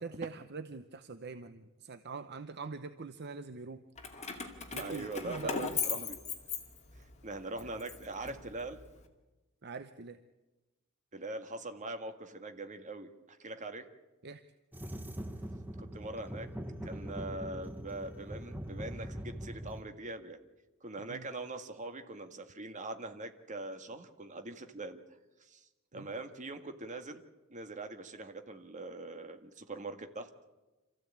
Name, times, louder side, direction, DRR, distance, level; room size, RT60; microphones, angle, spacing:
voice 1, 0.0-3.8 4.7-6.1 9.6-10.2 14.2-14.4 21.0-21.3 25.9-26.1, right 4 dB, 50° right, 10 dB, 0.8 m, -44 dB
Keys jangling, 4.0-7.1 7.6-8.9, left 6 dB, 35° left, 2.4 m, -38 dB
voice 2, 4.8-6.2 7.2-8.8 11.1-13.9 15.8-16.5 16.8-20.4 20.8-25.0 25.4-25.7 25.9-27.2 27.5-30.5, right 2 dB, 35° right, 7 dB, 1.8 m, -42 dB
sound 1, 14.7-19.8, equal, 10° right, 1.2 m, -42 dB
26.5 x 15.0 x 8.7 m, 1.1 s
head